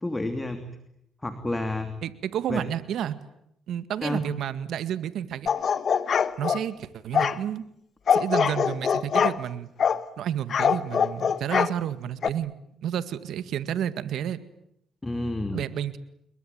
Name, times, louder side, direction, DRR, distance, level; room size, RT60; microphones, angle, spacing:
voice 1, 0.0-0.7 1.2-1.9 2.5-2.6 4.0-4.2 15.0-15.6, left 2 dB, 15° left, 8 dB, 2.9 m, -29 dB
voice 2, 2.0-3.2 3.7-5.5 6.4-7.6 8.1-9.7 10.2-12.5 12.8-14.4 15.5-16.0, right 10 dB, 75° right, 13 dB, 1.9 m, -30 dB
sound 1, 5.5-6.6 7.1-7.4 8.1-9.4 9.8-10.0 10.5-11.7 12.2-12.3, left 7 dB, 50° left, 1.3 m, -23 dB
28.5 x 22.0 x 9.3 m, 0.76 s
cardioid pair, 90°, 0 cm